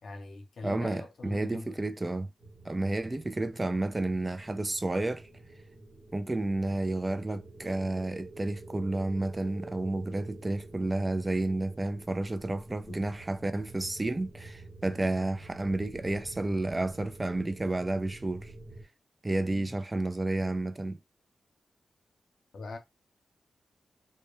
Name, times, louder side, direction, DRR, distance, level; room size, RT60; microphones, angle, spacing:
voice 1, 0.0-1.8 12.9-13.0 19.5-19.7 22.5-22.8, left 3 dB, 75° left, 0.6 m, -43 dB
voice 2, 0.6-2.3 2.6-5.3 6.1-18.5 19.2-21.0, right 2 dB, 25° right, 0.3 m, -31 dB
sound 1, 2.4-18.8, right 2 dB, 70° right, 1.0 m, -48 dB
2.2 x 2.2 x 2.9 m
cardioid pair, 65°, 0 cm